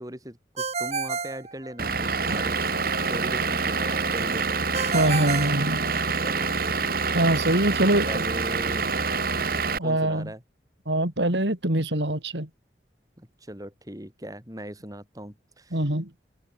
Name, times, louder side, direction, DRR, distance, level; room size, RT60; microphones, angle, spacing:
voice 1, 0.0-4.6 6.2-6.8 7.8-8.9 9.8-10.4 13.2-15.9, right 1 dB, 20° right, 6.2 m, -39 dB
Ringtone, 0.6-2.2 4.7-6.4, right 5 dB, 40° right, 2.7 m, -31 dB
Vehicle / Engine, 1.8-9.8, right 4 dB, 55° right, 3.6 m, -26 dB
voice 2, 4.9-5.8 7.1-8.2 9.8-10.3 10.9-12.5 15.7-16.1, right 1 dB, 85° right, 3.9 m, -24 dB
open air
head